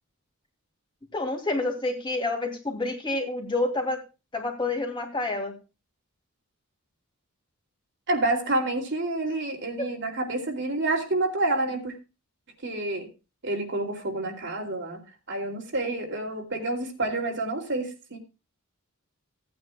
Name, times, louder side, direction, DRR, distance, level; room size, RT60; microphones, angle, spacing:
voice 1, 1.1-4.0 4.3-5.5 9.8-9.9, left 2 dB, 20° left, 2 dB, 2.7 m, -28 dB
voice 2, 8.1-11.9 12.6-13.1 13.4-15.0 15.3-18.2, right 2 dB, 55° right, 3 dB, 2.8 m, -28 dB
17.5 x 9.6 x 2.3 m, 0.29 s
head